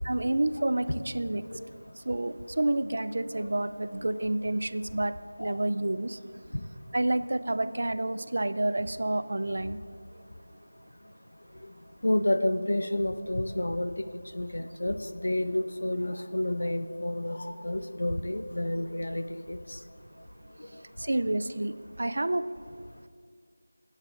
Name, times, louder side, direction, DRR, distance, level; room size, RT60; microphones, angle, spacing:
voice 1, 0.0-1.5 2.1-6.2 6.9-9.8 21.0-22.5, right 1 dB, 60° right, 13 dB, 0.5 m, -29 dB
voice 2, 12.0-13.9 14.3-15.0 15.2-19.6, left 1 dB, 75° left, 9 dB, 0.8 m, -29 dB
22.0 x 10.5 x 2.5 m, 2.1 s
figure-of-eight pair, 170°, 0 cm